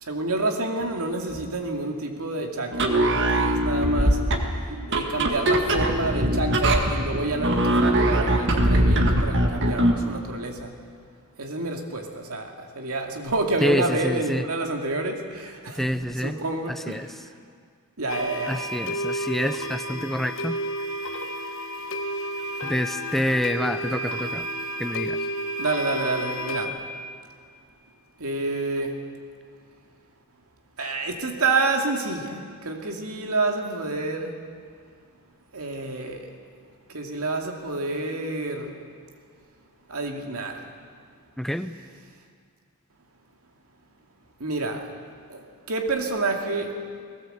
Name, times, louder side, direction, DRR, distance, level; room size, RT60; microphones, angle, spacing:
voice 1, 0.0-4.2 4.9-10.7 11.4-17.2 18.0-18.6 25.6-26.8 28.2-29.0 30.8-34.4 35.5-36.3 36.9-38.8 39.9-40.6 44.4-44.9 45.3-46.8, right 2 dB, 80° right, 3 dB, 2.5 m, -28 dB
sound 1, 2.7-10.0, right 1 dB, 55° right, 1.9 m, -22 dB
voice 2, 13.6-14.5 15.8-16.4 16.7-17.1 18.5-20.6 22.6-24.5 24.8-25.2 41.4-41.8, equal, ahead, 10 dB, 0.5 m, -27 dB
sound 2, 18.1-26.7, equal, 65° left, 1.4 m, -31 dB
19.5 x 17.5 x 8.0 m, 2.1 s
head